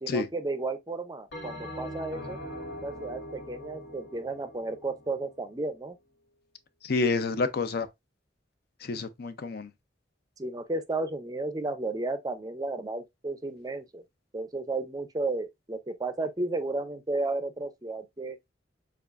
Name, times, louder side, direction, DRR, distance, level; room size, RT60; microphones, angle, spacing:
voice 1, 0.0-2.4 2.8-6.0 10.4-14.0 14.3-18.4, right 2 dB, 20° right, 0.5 m, -33 dB
Bell, 1.3-5.9, equal, 75° left, 1.7 m, -42 dB
voice 2, 6.8-7.9 8.8-9.7, left 3 dB, 55° left, 0.5 m, -28 dB
6.9 x 2.4 x 2.5 m
head